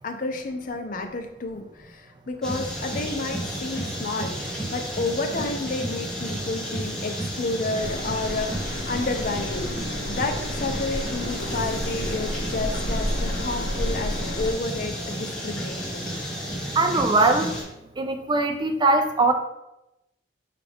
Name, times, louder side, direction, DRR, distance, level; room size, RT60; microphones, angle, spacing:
voice 1, 0.0-9.7 10.1-16.1, left 3 dB, 50° left, 5 dB, 0.5 m, -30 dB
sound 1, 2.4-17.6, equal, 5° left, 0.8 m, -32 dB
sound 2, 7.8-14.5, left 1 dB, 90° left, 0.7 m, -31 dB
voice 2, 16.8-17.5 18.0-19.3, right 3 dB, 25° right, 6 dB, 0.4 m, -21 dB
4.9 x 2.5 x 3.4 m, 0.91 s
head